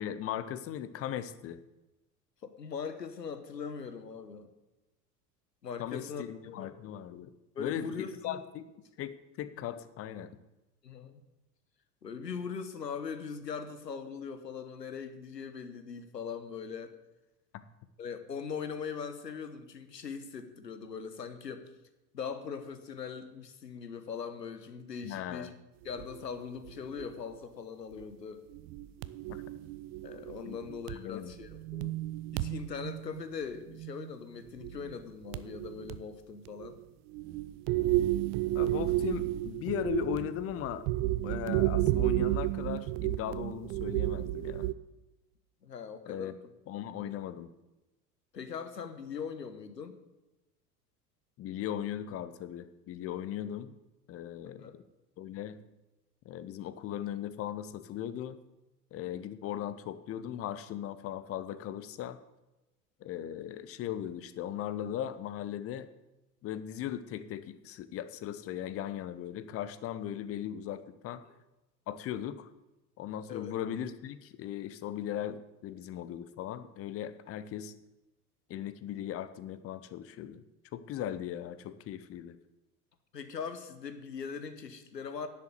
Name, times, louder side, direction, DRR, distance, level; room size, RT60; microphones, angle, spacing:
voice 1, 0.0-1.6 5.8-7.3 7.6-8.7 9.0-10.3 25.0-25.5 29.3-29.4 30.5-30.6 30.9-31.3 38.5-40.8 41.2-44.7 46.1-46.4 46.7-47.5 51.4-53.7 54.1-54.8 55.2-55.6 56.2-58.4 58.9-62.2 63.0-65.9 66.4-71.2 71.9-72.5 73.0-77.7 78.5-80.4 80.7-82.4, left 11 dB, 30° left, 14 dB, 0.8 m, -38 dB
voice 2, 2.4-4.5 5.6-6.8 7.5-8.4 10.8-11.2 12.0-16.9 18.0-21.7 22.1-25.5 25.8-28.4 30.0-31.9 32.3-36.8 45.6-46.4 47.0-47.1 48.3-50.0 54.4-54.8 71.2-71.3 73.3-73.6 83.1-85.3, left 6 dB, 80° left, 10 dB, 1.3 m, -41 dB
sound 1, 26.0-26.2 26.7-27.1 27.3-27.4 28.0-28.1 28.5-30.9 31.3-34.1 34.5-34.9 35.3-36.0 36.4-36.8 37.1-44.7, right 15 dB, 30° right, 0.4 m, -32 dB
11.0 x 7.5 x 7.9 m, 1.0 s
figure-of-eight pair, 75°, 49 cm